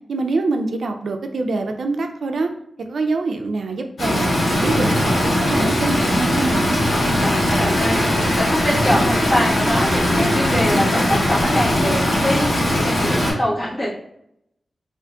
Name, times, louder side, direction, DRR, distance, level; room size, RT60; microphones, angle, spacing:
voice 1, 0.1-2.5 2.9-4.3 4.6-6.8, right 3 dB, 70° right, 5 dB, 0.3 m, -24 dB
Stream, 4.0-13.3, left 1 dB, 75° left, 1.3 m, -19 dB
voice 2, 7.2-13.9, left 1 dB, 35° left, -8 dB, 1.2 m, -23 dB
Brass instrument, 7.5-11.5, left 1 dB, 15° left, 0.5 m, -32 dB
3.6 x 2.5 x 2.3 m, 0.75 s
wide cardioid pair, 180°, 0 cm